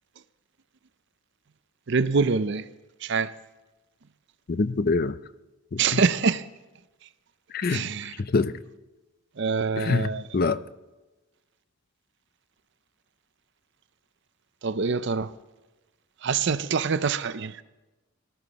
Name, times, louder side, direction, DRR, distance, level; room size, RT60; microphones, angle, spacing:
voice 1, 1.9-2.7 3.0-3.3 5.8-6.4 7.7-8.1 9.4-10.3 14.6-15.3 16.2-17.6, right 5 dB, 55° right, 0.5 m, -25 dB
voice 2, 4.5-5.2 5.7-5.8 7.5-7.8 8.2-8.5 9.8-10.6, left 3 dB, 45° left, 0.4 m, -25 dB
18.5 x 13.5 x 4.1 m
head